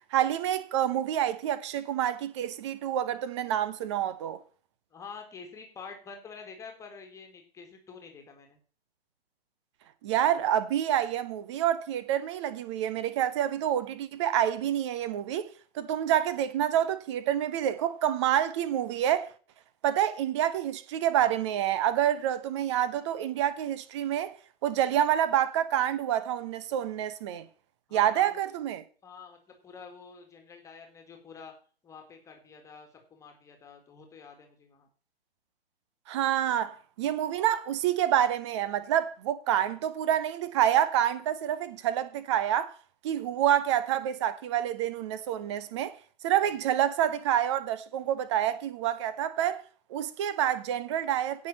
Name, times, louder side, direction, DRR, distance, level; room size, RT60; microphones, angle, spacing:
voice 1, 0.1-4.4 10.0-15.5 15.7-19.3 19.8-24.3 24.6-27.5 27.9-28.8 36.1-42.7 43.0-45.9 46.2-49.6 49.9-51.5, right 11 dB, 30° right, 1.0 m, -27 dB
voice 2, 4.9-8.6 27.9-28.4 29.0-29.4 29.6-31.5 31.8-34.9 46.4-46.6, left 5 dB, 10° left, 2.1 m, -47 dB
17.0 x 6.2 x 4.2 m
figure-of-eight pair, 125°, 31 cm